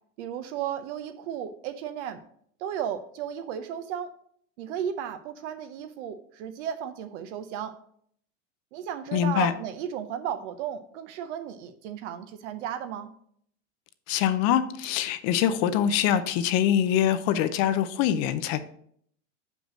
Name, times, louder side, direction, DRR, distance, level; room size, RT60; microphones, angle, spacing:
voice 1, 0.2-2.2 2.6-4.1 4.6-7.7 8.7-13.1, right 9 dB, 65° right, 0.8 m, -34 dB
voice 2, 9.1-9.5 14.1-18.6, left 10 dB, 40° left, 0.6 m, -24 dB
5.9 x 5.3 x 6.1 m
supercardioid pair, 140°, 38 cm